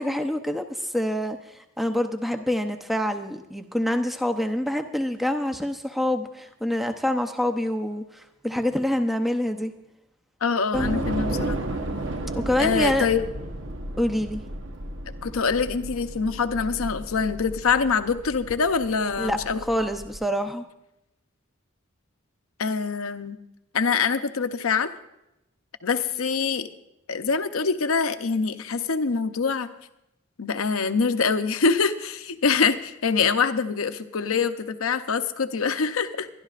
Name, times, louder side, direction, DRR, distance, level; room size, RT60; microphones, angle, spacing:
voice 1, 0.0-9.7 10.7-11.1 12.4-13.1 14.0-14.4 19.2-20.7, left 1 dB, ahead, 6 dB, 0.7 m, -26 dB
voice 2, 10.4-11.6 12.6-13.2 15.2-19.6 22.6-23.4 23.7-24.9 25.8-26.7 27.1-29.7 30.4-36.3, left 5 dB, 80° left, 9 dB, 0.7 m, -24 dB
Train / Subway metro underground, 10.7-20.2, right 1 dB, 60° right, 1.0 m, -33 dB
23.5 x 11.5 x 2.5 m, 0.87 s
head